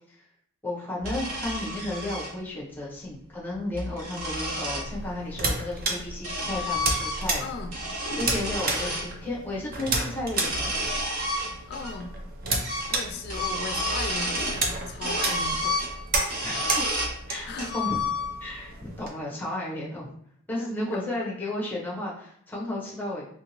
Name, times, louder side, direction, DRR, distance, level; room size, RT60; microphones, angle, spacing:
voice 1, 0.6-7.4 8.1-10.9 16.4-18.0 18.4-20.1 20.5-23.3, left 1 dB, 10° left, -4 dB, 0.8 m, -33 dB
sound 1, 1.0-2.3 3.5-4.9 5.8-7.4 7.7-9.1 10.2-11.9 12.2-12.3 12.6-13.0 13.2-14.6 15.0-17.2 17.6-18.5, left 1 dB, 80° right, 1.0 m, -30 dB
sound 2, 4.8-19.1, right 2 dB, 40° right, 0.5 m, -32 dB
voice 2, 7.4-7.8 11.7-12.1 12.9-15.8 17.5-17.8 20.9-21.0, left 4 dB, 45° left, 4 dB, 0.4 m, -37 dB
3.1 x 2.7 x 2.9 m, 0.66 s
head